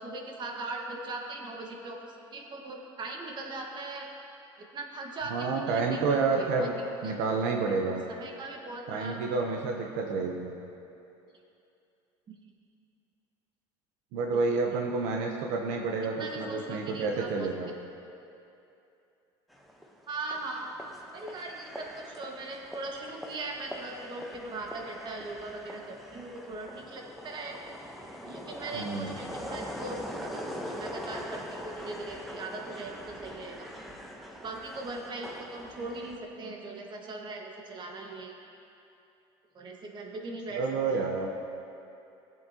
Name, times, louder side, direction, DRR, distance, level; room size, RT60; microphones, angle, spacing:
voice 1, 0.0-2.0 2.3-4.1 4.6-6.7 7.0-7.1 7.7-9.2 12.3-12.4 14.3-14.8 16.2-17.5 20.1-20.7 21.1-27.6 28.2-33.7 34.4-38.3 39.5-40.6 40.9-41.0, right 2 dB, 40° right, 0 dB, 1.6 m, -40 dB
voice 2, 5.3-6.7 7.0-8.0 8.9-10.5 14.1-17.7 28.7-29.1 40.5-41.3, right 4 dB, 75° right, 1 dB, 0.9 m, -29 dB
sound 1, 19.5-36.2, equal, ahead, 1.0 m, -42 dB
17.5 x 7.5 x 2.9 m, 2.7 s
supercardioid pair, 105°, 12 cm